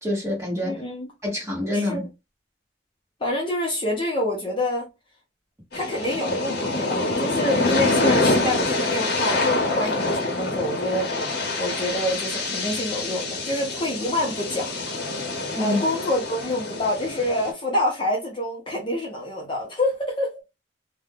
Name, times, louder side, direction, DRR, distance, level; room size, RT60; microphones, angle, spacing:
voice 1, 0.0-0.8 1.2-2.1 15.5-15.8, left 1 dB, 15° right, 1.2 m, -26 dB
voice 2, 0.6-1.1 1.7-2.0 3.2-4.9 5.7-14.7 15.6-20.3, left 1 dB, 25° left, 0.7 m, -27 dB
sound 1, 5.7-17.5, left 2 dB, 55° left, 0.8 m, -26 dB
2.5 x 2.2 x 3.4 m
head